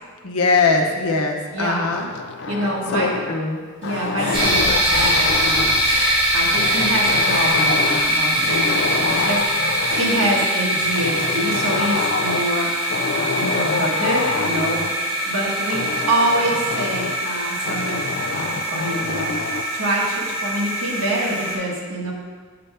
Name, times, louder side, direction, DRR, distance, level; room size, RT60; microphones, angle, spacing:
voice 1, 0.2-2.1 2.9-3.6, left 4 dB, 90° left, 2 dB, 0.9 m, -21 dB
voice 2, 1.5-1.9 2.5-3.1 3.8-5.8 6.3-12.7 13.1-18.1 18.3-19.3 19.7-22.1, right 1 dB, 70° right, -3 dB, 1.4 m, -26 dB
sound 1, 1.9-3.5 3.8-5.9 6.5-8.2 8.5-10.5 11.0-12.5 12.9-14.9 15.7-17.2 17.7-19.7, left 5 dB, 50° left, 0.3 m, -27 dB
Human voice / Breathing, 3.8-8.0 8.3-11.9, right 1 dB, 50° right, 1.4 m, -35 dB
sound 2, 4.3-21.6, equal, 20° right, 1.6 m, -22 dB
6.7 x 6.6 x 3.4 m, 1.5 s
head